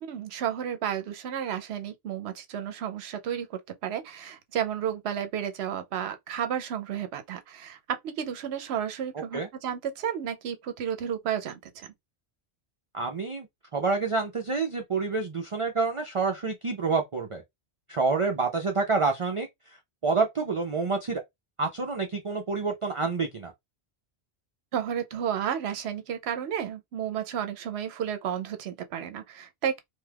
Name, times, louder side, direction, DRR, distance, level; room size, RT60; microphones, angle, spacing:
voice 1, 0.0-11.9 24.7-29.8, right 9 dB, 75° right, 0.8 m, -32 dB
voice 2, 12.9-13.5 13.7-17.4 17.9-19.8 20.0-21.2 21.6-23.5, right 4 dB, 45° right, 0.4 m, -28 dB
2.7 x 2.3 x 3.3 m
omnidirectional pair, 1.1 m